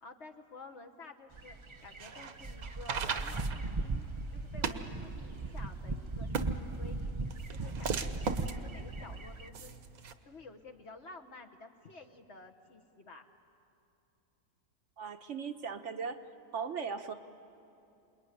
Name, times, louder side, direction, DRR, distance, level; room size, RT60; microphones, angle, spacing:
voice 1, 0.0-1.6 1.8-4.1 4.3-7.2 7.5-9.8 10.2-13.3, left 3 dB, 50° left, 4 dB, 1.6 m, -52 dB
sound 1, 1.3-9.5, right 3 dB, 30° right, 0.6 m, -38 dB
sound 2, 1.8-10.1, right 5 dB, 75° right, 1.5 m, -39 dB
voice 2, 15.0-16.2 16.5-17.1, right 6 dB, 55° right, 7 dB, 1.1 m, -38 dB
27.0 x 21.5 x 9.9 m, 2.8 s
omnidirectional pair, 1.6 m